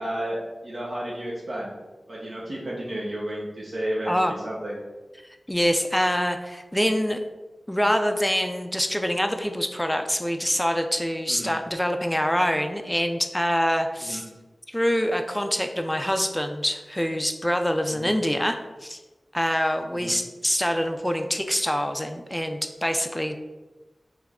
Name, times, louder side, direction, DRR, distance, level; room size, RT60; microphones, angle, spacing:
voice 1, 0.0-1.7 2.1-4.8 11.3-11.5 14.0-14.2 17.9-18.1 19.9-20.1, right 1 dB, 65° right, -6 dB, 0.8 m, -32 dB
voice 2, 5.5-7.2 7.7-14.2 14.7-19.0 19.3-23.4, equal, 10° left, 6 dB, 0.3 m, -25 dB
3.5 x 3.1 x 3.6 m, 1.2 s
cardioid pair, 40°, 0 cm